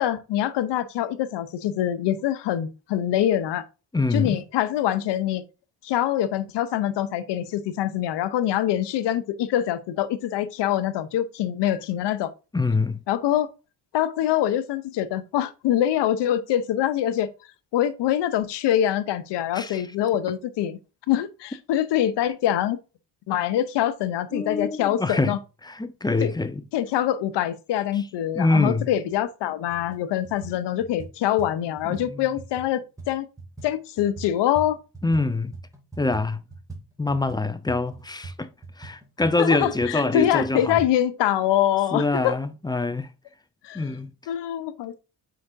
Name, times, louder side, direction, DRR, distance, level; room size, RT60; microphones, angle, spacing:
voice 1, 0.0-3.6 4.1-5.4 5.8-12.3 13.1-13.5 13.9-17.3 17.7-20.8 21.1-22.8 23.3-25.4 26.2-26.3 26.7-33.3 33.6-34.8 39.4-42.3 43.6-43.8 44.3-45.0, left 11 dB, 80° left, 0.8 m, -24 dB
voice 2, 3.9-4.4 12.5-13.0 19.5-19.8 24.3-25.4 25.6-26.6 28.3-28.9 31.9-32.2 35.0-35.6 36.0-36.4 37.0-38.5 38.8-40.8 41.9-43.1 43.7-44.1, left 2 dB, 10° left, 0.5 m, -25 dB
sound 1, 29.1-29.2 29.6-30.0 30.2-35.3 35.5-40.9, right 3 dB, 10° right, 2.2 m, -41 dB
7.7 x 5.0 x 2.6 m
cardioid pair, 95°, 41 cm